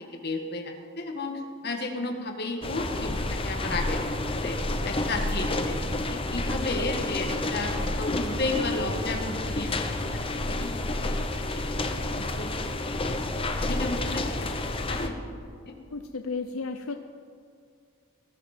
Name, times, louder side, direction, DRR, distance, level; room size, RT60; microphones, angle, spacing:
voice 1, 0.2-3.2 3.4-4.0 4.3-4.6 4.9-5.8 6.3-9.7 10.1-10.2 10.5-10.7 11.0-11.1 11.5-11.7 12.2-12.5 13.7-15.1 15.7-15.8, left 2 dB, 45° left, 3 dB, 1.7 m, -33 dB
sound 1, 2.6-15.1, left 2 dB, 25° left, 0.9 m, -29 dB
voice 2, 15.9-16.9, left 4 dB, 70° left, 7 dB, 0.6 m, -33 dB
19.0 x 14.0 x 4.4 m, 2.3 s
head